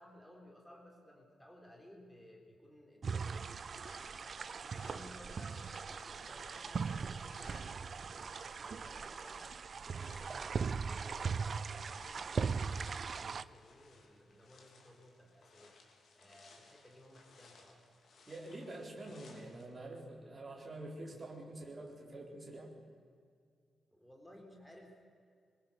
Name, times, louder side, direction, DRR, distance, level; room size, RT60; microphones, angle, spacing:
voice 1, 0.0-3.5 4.6-9.4 9.8-15.7 16.1-17.8 23.9-25.0, equal, 5° left, 1 dB, 3.8 m, -58 dB
sound 1, 3.0-13.4, right 5 dB, 40° right, 0.6 m, -39 dB
sound 2, 3.8-19.7, left 3 dB, 55° left, 3.9 m, -62 dB
voice 2, 18.3-22.7, right 2 dB, 25° right, 0 dB, 4.3 m, -47 dB
23.0 x 21.0 x 6.9 m, 2.2 s
wide cardioid pair, 160°, 0 cm